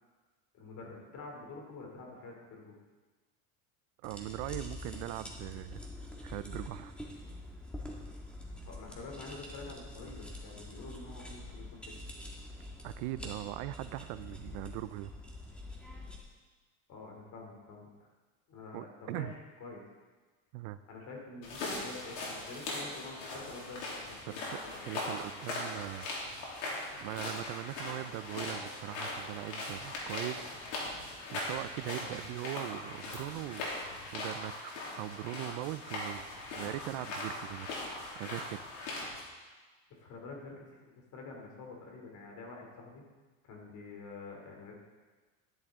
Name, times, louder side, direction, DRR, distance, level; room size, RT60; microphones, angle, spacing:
voice 1, 0.5-2.8 8.7-11.8 16.9-17.9 18.5-19.8 20.9-24.0 24.2-24.4 24.7-25.0 39.9-43.0 43.4-44.8, left 3 dB, 50° left, 0 dB, 3.0 m, -47 dB
sound 1, 4.0-16.2, left 1 dB, 5° left, 1.7 m, -46 dB
voice 2, 4.0-6.9 12.8-15.1 18.7-19.3 20.5-20.8 24.3-26.1 27.0-30.6 31.3-36.3 36.5-37.8 38.1-38.7, right 15 dB, 75° right, 14 dB, 0.6 m, -40 dB
sound 2, 21.4-39.2, left 2 dB, 90° left, 3.4 m, -40 dB
11.5 x 10.5 x 3.7 m, 1.3 s
supercardioid pair, 125°, 39 cm